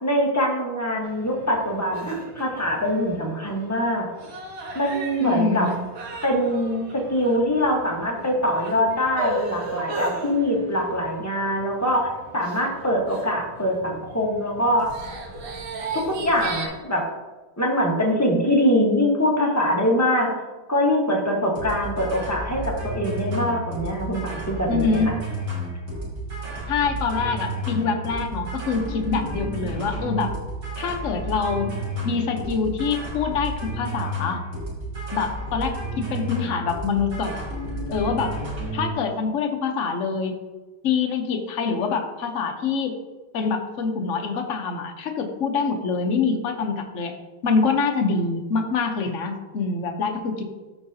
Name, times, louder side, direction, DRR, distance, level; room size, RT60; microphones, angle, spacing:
voice 1, 0.0-4.1 4.7-5.7 6.2-14.9 15.9-17.1 17.6-20.3 20.7-25.2, equal, 10° left, -2 dB, 0.8 m, -23 dB
sound 1, 1.0-16.7, right 2 dB, 70° right, 1.8 m, -36 dB
voice 2, 5.2-5.7 24.7-25.1 26.7-30.3 30.8-31.7 32.0-34.4 35.1-35.7 36.1-37.5 37.9-38.4 38.7-40.4 40.8-43.0 43.3-47.1 47.4-50.4, left 5 dB, 55° left, 4 dB, 0.9 m, -25 dB
sound 2, 21.6-38.9, right 1 dB, 40° right, 2.6 m, -31 dB
13.0 x 4.8 x 2.8 m, 1.2 s
omnidirectional pair, 2.3 m